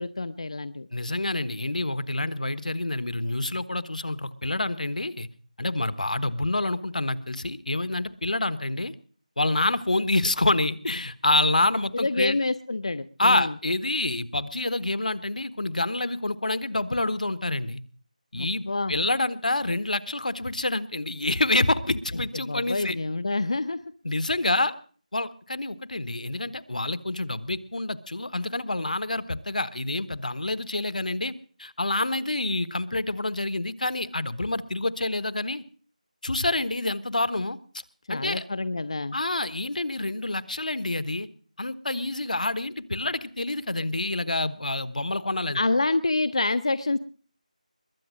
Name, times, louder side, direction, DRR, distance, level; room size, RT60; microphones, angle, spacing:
voice 1, 0.0-0.9 11.9-13.5 18.4-18.9 22.4-23.8 38.1-39.2 45.5-47.0, left 2 dB, 50° left, 13 dB, 0.6 m, -27 dB
voice 2, 0.9-5.3 5.6-8.9 9.4-12.4 13.2-17.8 18.3-23.0 24.0-24.7 25.1-31.3 31.6-35.6 36.2-37.6 38.1-38.5 39.1-41.3 41.6-45.6, left 2 dB, 75° left, 15 dB, 1.3 m, -27 dB
21.5 x 8.2 x 6.3 m, 0.43 s
figure-of-eight pair, 175°, 4 cm